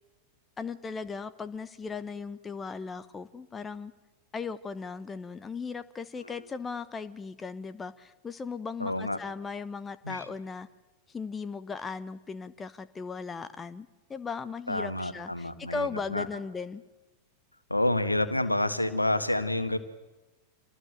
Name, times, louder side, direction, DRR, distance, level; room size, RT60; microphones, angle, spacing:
voice 1, 0.6-3.9 4.3-10.7 11.1-16.8, left 5 dB, 15° left, 13 dB, 1.0 m, -37 dB
voice 2, 8.8-9.2 10.0-10.3 14.7-16.3 17.7-19.8, left 1 dB, 85° left, 10 dB, 1.6 m, -28 dB
26.5 x 19.0 x 9.1 m, 1.1 s
figure-of-eight pair, 90°, 0 cm